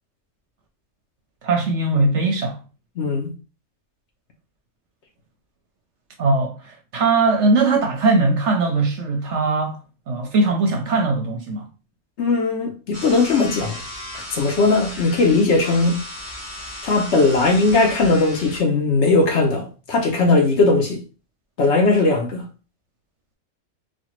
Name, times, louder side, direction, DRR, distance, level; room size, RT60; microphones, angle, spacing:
voice 1, 1.4-2.6 6.2-9.8 10.1-11.7, right 3 dB, 65° right, 0.8 m, -20 dB
voice 2, 3.0-3.3 12.2-13.8 14.3-16.0 16.8-21.0 21.6-22.4, left 3 dB, 60° left, 0.8 m, -18 dB
sound 1, 12.9-18.6, left 1 dB, 30° left, 2.0 m, -35 dB
4.2 x 2.2 x 3.0 m
omnidirectional pair, 1.5 m